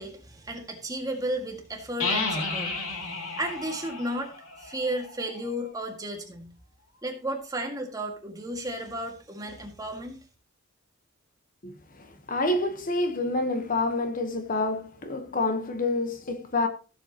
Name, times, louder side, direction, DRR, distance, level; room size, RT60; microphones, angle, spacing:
voice 1, 0.0-4.3 4.6-6.5 7.0-10.2, right 1 dB, 15° right, 1.9 m, -34 dB
sound 1, 2.0-5.6, left 3 dB, 80° left, 2.7 m, -32 dB
voice 2, 11.6-16.7, left 2 dB, 40° left, 1.1 m, -28 dB
15.5 x 7.7 x 2.9 m
head